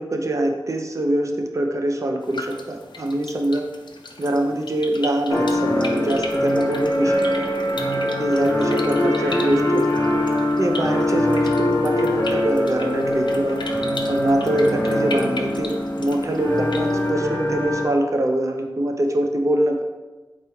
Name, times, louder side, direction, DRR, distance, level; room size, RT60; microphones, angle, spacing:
voice 1, 0.0-3.6 4.2-7.5 8.2-9.9 10.6-13.6 14.1-19.8, right 1 dB, 40° right, 3 dB, 0.5 m, -23 dB
sound 1, 2.2-17.1, left 2 dB, 65° left, 0.4 m, -38 dB
sound 2, 5.3-17.9, left 1 dB, 25° left, 0.9 m, -23 dB
4.0 x 3.0 x 3.4 m, 1.2 s
wide cardioid pair, 90°, 8 cm